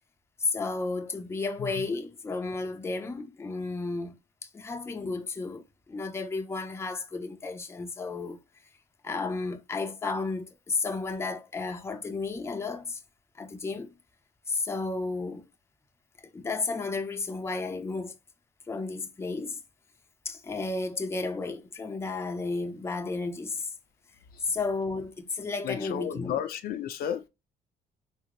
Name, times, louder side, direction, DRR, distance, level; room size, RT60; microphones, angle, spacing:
voice 1, 0.4-4.1 4.4-8.4 9.0-13.0 13.3-13.9 14.5-15.5 16.3-18.2 18.7-19.6 20.2-23.7 24.5-26.4, left 3 dB, 15° left, 0.5 m, -33 dB
voice 2, 1.6-1.9 24.3-24.5 25.6-27.3, left 9 dB, 60° left, 0.5 m, -33 dB
3.6 x 2.0 x 2.9 m
cardioid pair, 110°, 17 cm